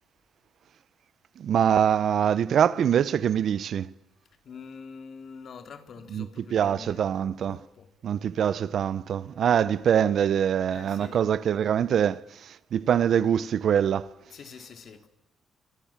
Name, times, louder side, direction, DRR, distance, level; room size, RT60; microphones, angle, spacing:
voice 1, 1.4-3.9 6.1-7.6 8.0-14.1, right 9 dB, 65° right, 1.0 m, -24 dB
voice 2, 4.4-7.9 10.7-11.3 14.3-15.1, left 6 dB, 55° left, 3.7 m, -45 dB
28.5 x 25.5 x 7.5 m
cardioid pair, 90°, 0 cm